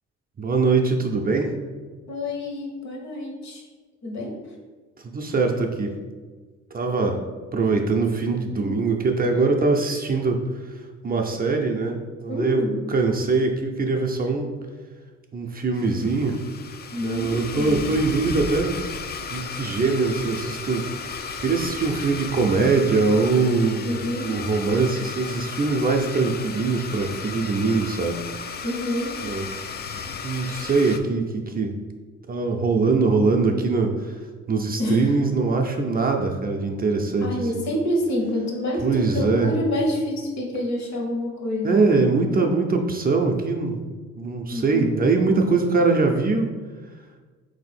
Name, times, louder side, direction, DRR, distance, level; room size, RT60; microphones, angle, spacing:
voice 1, 0.4-1.5 5.0-6.0 6.7-7.2 7.5-10.7 11.0-14.5 15.3-16.4 17.0-18.8 19.3-20.9 21.1-23.9 24.2-28.2 29.2-29.5 30.2-31.8 32.3-34.2 34.5-37.6 38.8-39.6 41.6-43.8 44.2-46.5, right 3 dB, 30° right, 2 dB, 0.5 m, -22 dB
voice 2, 2.1-3.6 4.0-4.3 8.6-8.9 12.3-12.8 16.9-17.8 23.8-24.3 28.6-29.1 34.8-35.0 37.2-41.8 44.5-45.0, left 1 dB, 65° left, 0 dB, 1.2 m, -27 dB
Domestic sounds home sounds, 15.7-31.0, left 5 dB, 35° left, 0.4 m, -35 dB
3.6 x 2.7 x 4.2 m, 1.4 s
cardioid pair, 90°, 30 cm